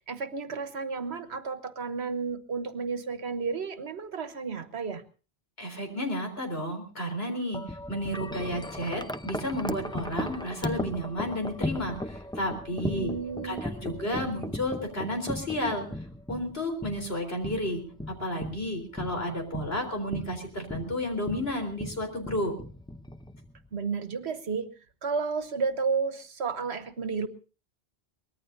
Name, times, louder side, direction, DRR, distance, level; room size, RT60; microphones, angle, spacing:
voice 1, 0.0-5.0 12.7-14.3 23.7-24.7 25.0-27.3, right 5 dB, 85° right, 11 dB, 1.5 m, -32 dB
voice 2, 5.6-13.1 13.4-15.9 16.3-22.5, left 1 dB, 70° left, 5 dB, 4.2 m, -32 dB
Wind chime, 7.5-23.7, left 1 dB, 5° left, 0.5 m, -37 dB
23.5 x 19.5 x 2.7 m, 0.37 s
omnidirectional pair, 1.1 m